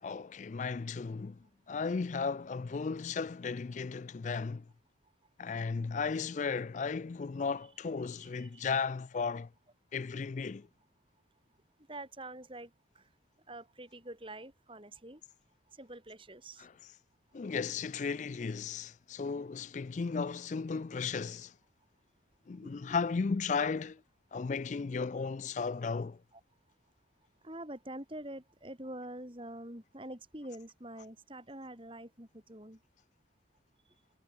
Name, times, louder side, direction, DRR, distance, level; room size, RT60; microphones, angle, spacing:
voice 1, 0.0-1.4 1.7-4.7 5.4-9.5 9.9-10.7 16.6-16.7 17.3-21.5 22.5-24.0 24.3-26.2, left 5 dB, 40° left, 0.4 m, -35 dB
voice 2, 8.2-8.7 11.9-13.1 13.5-15.2 15.7-16.7 22.6-23.0 26.3-26.4 27.4-32.8, right 1 dB, 30° right, 5.7 m, -46 dB
head